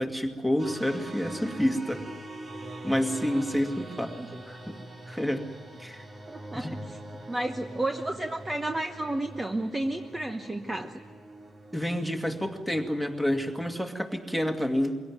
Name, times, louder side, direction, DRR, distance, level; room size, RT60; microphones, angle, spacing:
voice 1, 0.0-2.0 2.8-4.2 4.5-4.8 5.1-5.5 5.8-6.0 6.5-6.7 11.7-14.9, equal, 5° right, 4 dB, 2.3 m, -28 dB
sound 1, 0.6-13.8, right 1 dB, 40° right, 2.7 m, -43 dB
voice 2, 6.3-7.0 7.3-10.9, right 1 dB, 20° right, 5 dB, 1.1 m, -32 dB
23.0 x 17.0 x 9.4 m, 1.5 s
cardioid pair, 90°, 0 cm